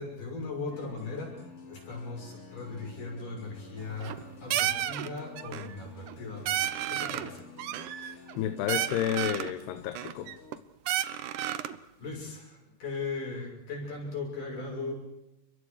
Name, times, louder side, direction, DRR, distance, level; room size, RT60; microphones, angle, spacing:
voice 1, 0.0-7.4 11.3-11.7 12.0-14.9, left 3 dB, 55° left, 7.7 m, -38 dB
sound 1, 0.7-10.6, left 4 dB, 30° left, 1.5 m, -50 dB
sound 2, 3.8-4.2 4.5-5.1 5.4-5.7 6.1-6.2 6.5-7.3 7.6-8.4 8.7-9.5 10.0-10.6 10.9-11.8, right 12 dB, 75° right, 1.9 m, -32 dB
voice 2, 8.0-10.3, left 11 dB, 90° left, 3.1 m, -31 dB
29.5 x 25.0 x 4.9 m
omnidirectional pair, 4.6 m